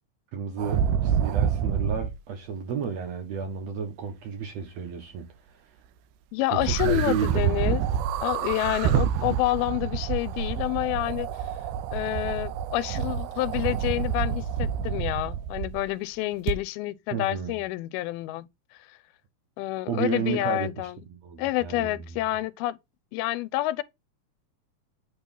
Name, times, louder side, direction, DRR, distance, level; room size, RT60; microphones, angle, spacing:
voice 1, 0.3-5.6 6.5-7.9 17.1-17.5 19.9-22.2, right 7 dB, 70° right, 1.6 m, -32 dB
sound 1, 0.6-2.2 6.6-15.9 16.5-16.6, right 8 dB, 85° right, 1.9 m, -27 dB
voice 2, 6.3-7.8 8.2-11.3 11.9-18.5 18.8-19.0 19.6-20.9 21.4-22.8 23.1-23.8, left 17 dB, 85° left, 2.4 m, -28 dB
8.6 x 3.0 x 5.3 m
omnidirectional pair, 4.4 m